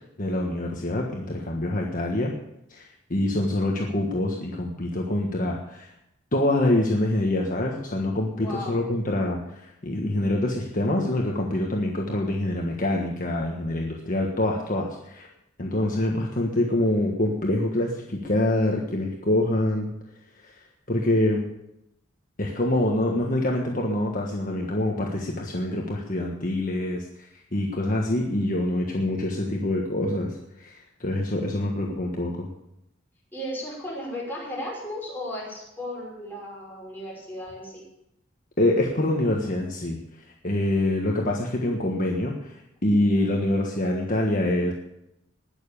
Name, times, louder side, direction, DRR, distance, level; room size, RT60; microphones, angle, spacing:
voice 1, 0.2-2.3 2.7-5.9 6.3-15.3 15.6-19.9 20.4-20.5 20.9-21.4 22.4-27.3 27.5-32.5 38.6-40.0 40.4-42.6 42.8-44.7, left 1 dB, 45° left, 0 dB, 1.5 m, -25 dB
voice 2, 8.3-8.9 33.3-37.8 43.2-43.7, left 1 dB, 10° left, -4 dB, 5.8 m, -35 dB
19.5 x 7.1 x 7.0 m, 0.84 s
head